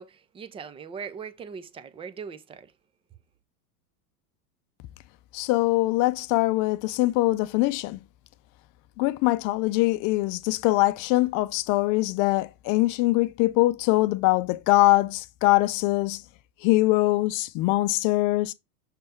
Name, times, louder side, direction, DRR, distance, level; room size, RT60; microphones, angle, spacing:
voice 1, 0.0-2.7, right 6 dB, 15° right, 0.4 m, -40 dB
voice 2, 5.3-8.0 9.0-16.2 16.6-18.5, left 19 dB, 45° left, 0.5 m, -23 dB
6.7 x 3.3 x 4.4 m
hypercardioid pair, 110°, 47 cm